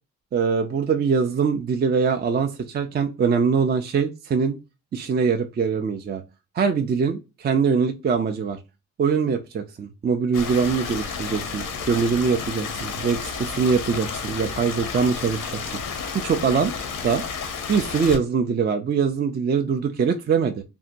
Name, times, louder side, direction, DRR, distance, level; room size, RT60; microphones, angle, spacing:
voice 1, 0.3-4.6 4.9-6.2 6.5-8.6 9.0-15.4 16.1-16.7 17.0-17.2 17.7-20.6, right 6 dB, 30° right, 6 dB, 0.4 m, -23 dB
Stream, 10.3-18.2, left 6 dB, 75° left, 0.6 m, -31 dB
2.7 x 2.2 x 2.5 m, 0.27 s
cardioid pair, 65°, 33 cm